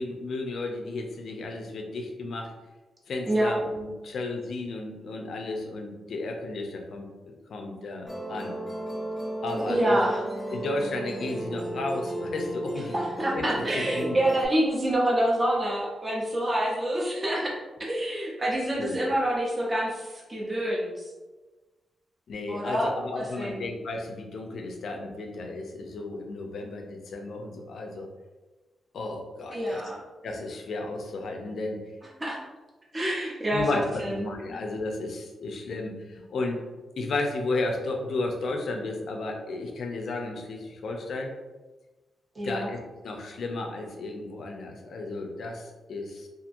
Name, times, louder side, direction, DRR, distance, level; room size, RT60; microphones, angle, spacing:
voice 1, 0.0-2.5 3.1-8.5 9.4-10.0 10.5-12.9 13.3-14.2 18.8-19.1 22.3-28.1 28.9-29.8 30.2-31.8 33.5-36.6 37.0-41.3 42.4-46.3, left 2 dB, 60° left, 2 dB, 0.4 m, -33 dB
Musical instrument, 8.1-14.5, right 1 dB, 15° left, 0.8 m, -34 dB
voice 2, 9.7-10.2 12.9-17.5 17.8-20.9 22.5-22.9 23.4-23.7 29.5-30.0 32.2-32.4 32.9-34.2 42.4-42.7, right 1 dB, 20° right, -4 dB, 0.6 m, -27 dB
2.8 x 2.5 x 2.5 m, 1.2 s
wide cardioid pair, 160°, 0 cm